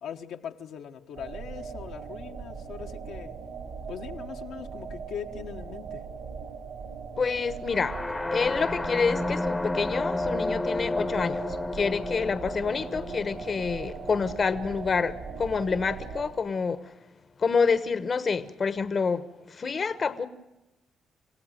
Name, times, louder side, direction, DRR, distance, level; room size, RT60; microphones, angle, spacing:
voice 1, 0.0-3.4 3.9-6.0, left 8 dB, 80° left, 1.4 m, -40 dB
sound 1, 1.1-16.3, right 6 dB, 70° right, 5.1 m, -40 dB
voice 2, 7.2-8.0 8.3-16.9 17.4-20.3, left 5 dB, 40° left, 1.1 m, -28 dB
sound 2, 7.7-15.6, left 2 dB, 15° left, 1.0 m, -32 dB
28.0 x 16.5 x 9.1 m
cardioid pair, 90°, 0 cm